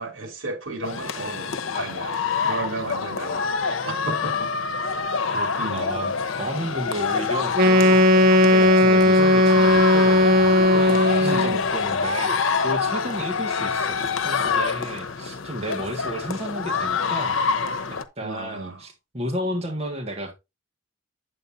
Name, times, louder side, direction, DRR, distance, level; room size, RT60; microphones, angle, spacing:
voice 1, 0.0-3.5 3.8-4.5 5.2-5.8 11.2-11.6 18.2-18.8, right 2 dB, 75° right, 3.0 m, -33 dB
sound 1, 0.8-18.0, left 5 dB, 85° left, 0.9 m, -26 dB
voice 2, 5.3-8.2 8.5-17.4 18.2-20.3, equal, 35° right, 1.7 m, -32 dB
Wind instrument woodwind instrument, 7.5-11.6, left 1 dB, 50° right, 1.0 m, -16 dB
9.1 x 7.8 x 2.7 m
head